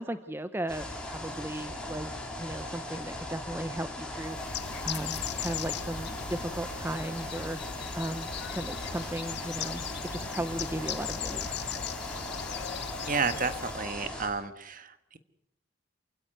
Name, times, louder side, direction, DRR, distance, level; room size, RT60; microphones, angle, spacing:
voice 1, 0.0-7.6 8.0-9.8 10.1-11.7, right 1 dB, 10° right, 11 dB, 0.7 m, -36 dB
sound 1, 0.7-14.3, left 1 dB, 5° left, 4.4 m, -39 dB
Bird, 4.2-13.9, left 8 dB, 55° left, 0.8 m, -38 dB
voice 2, 13.1-15.2, right 5 dB, 40° right, 11 dB, 1.5 m, -31 dB
27.5 x 17.0 x 6.8 m, 0.79 s
head